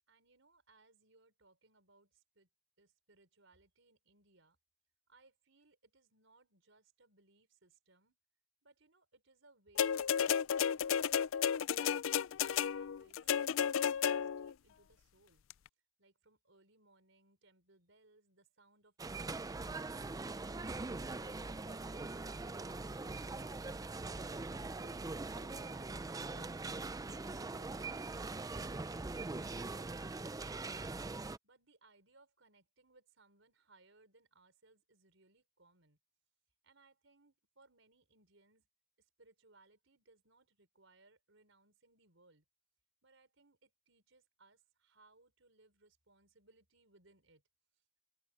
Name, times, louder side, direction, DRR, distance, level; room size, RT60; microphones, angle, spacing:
voice 1, 0.1-2.5 2.8-4.6 5.1-8.2 8.6-10.1 10.3-11.7 12.1-15.4 16.0-19.7 31.4-36.0 36.6-38.7 39.0-42.4 43.0-47.4, right 3 dB, 75° right, 5.4 m, -67 dB
sound 1, 9.8-14.5 15.5-15.6, left 8 dB, 90° left, 0.4 m, -33 dB
sound 2, 19.0-31.4, right 3 dB, 20° right, 0.5 m, -42 dB
open air
head